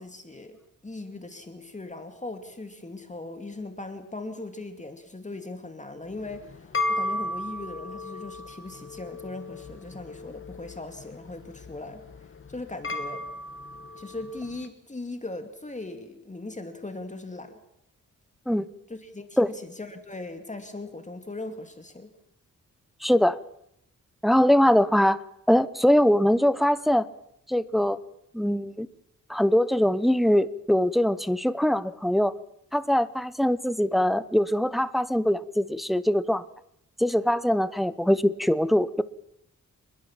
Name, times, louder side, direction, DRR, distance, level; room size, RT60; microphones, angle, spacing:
voice 1, 0.0-13.2 14.0-17.6 18.9-22.1, left 2 dB, 20° left, 6 dB, 2.4 m, -39 dB
sound 1, 6.1-14.6, left 2 dB, 40° left, 2.0 m, -35 dB
voice 2, 23.0-23.4 24.2-25.2 25.5-27.1 27.5-28.0 28.3-28.9 29.3-32.3 32.7-36.4 37.0-39.0, equal, ahead, 15 dB, 0.9 m, -22 dB
26.0 x 21.0 x 7.3 m, 0.76 s
wide cardioid pair, 120°, 33 cm